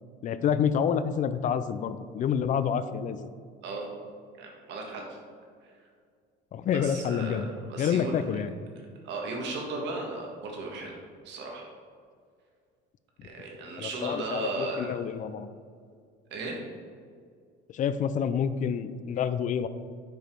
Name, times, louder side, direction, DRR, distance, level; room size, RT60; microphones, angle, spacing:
voice 1, 0.2-3.3 6.5-7.5 7.8-8.5 13.2-13.3 13.8-15.5 17.7-19.7, left 8 dB, 40° left, 13 dB, 0.4 m, -28 dB
voice 2, 4.4-5.2 5.6-5.7 6.7-8.1 9.0-11.0 11.2-11.6 13.2-14.9 16.3-16.6, right 3 dB, 65° right, 0 dB, 1.7 m, -36 dB
7.0 x 5.0 x 4.6 m, 2.1 s
cardioid pair, 125°, 19 cm